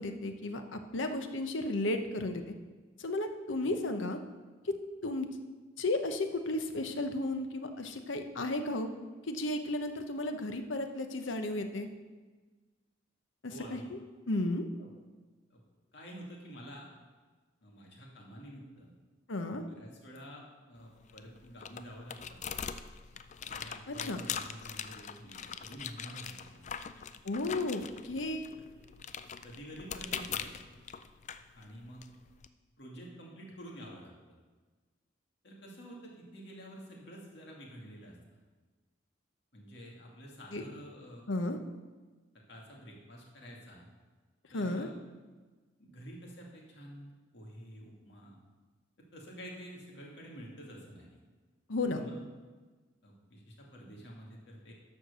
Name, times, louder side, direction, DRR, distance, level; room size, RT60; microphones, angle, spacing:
voice 1, 0.0-2.4 3.0-4.2 4.6-4.8 5.0-5.3 5.8-8.9 9.2-11.9 13.7-14.0 14.3-14.6 19.3-19.6 23.9-24.2 27.2-28.5 40.5-40.6 41.3-41.6 44.5-44.9 51.7-52.0, left 2 dB, 90° left, 7 dB, 0.9 m, -33 dB
voice 2, 13.5-13.9 14.8-14.9 15.5-15.6 15.9-16.9 17.6-18.9 19.7-22.4 23.5-26.7 29.4-30.7 31.5-32.0 32.8-34.1 35.4-38.2 39.5-41.3 42.5-43.9 44.5-45.0 45.8-48.4 49.1-51.1 51.9-52.2 53.0-54.7, equal, 60° left, -2 dB, 2.2 m, -49 dB
sound 1, 20.8-32.5, left 7 dB, 40° left, 0.4 m, -43 dB
11.5 x 4.7 x 6.7 m, 1.4 s
head